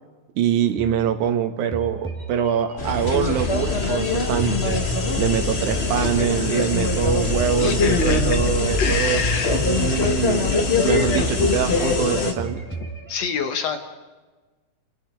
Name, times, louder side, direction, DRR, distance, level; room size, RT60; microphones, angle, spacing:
voice 1, 0.4-4.8 5.2-9.2 9.5-10.4 10.8-12.6, right 8 dB, 70° right, 6 dB, 2.7 m, -24 dB
sound 1, 0.8-1.4 1.7-4.1 4.4-6.7 7.0-9.4 9.7-10.8 11.0-12.1 12.4-13.1, right 3 dB, 5° left, 3.3 m, -35 dB
sound 2, 2.8-12.3, left 3 dB, 35° left, 0.9 m, -22 dB
voice 2, 7.6-8.4 8.8-9.6 9.9-10.3 10.9-11.0 13.1-13.8, left 5 dB, 60° left, 7 dB, 2.1 m, -27 dB
30.0 x 28.5 x 4.5 m, 1.3 s
omnidirectional pair, 3.7 m